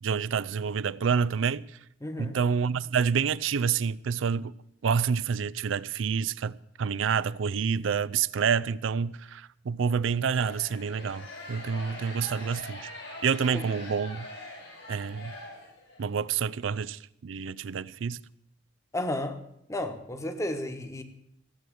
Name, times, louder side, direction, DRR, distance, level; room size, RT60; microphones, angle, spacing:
voice 1, 0.0-1.6 2.2-4.5 4.8-12.9 13.2-14.3 14.9-15.3 16.0-18.2, right 6 dB, 85° right, 0.4 m, -28 dB
voice 2, 2.0-2.4 13.5-13.6 18.9-19.4 19.7-21.0, left 1 dB, 15° left, 1.1 m, -32 dB
sound 1, 10.1-16.1, left 1 dB, 80° left, 5.3 m, -43 dB
15.5 x 7.9 x 7.7 m
head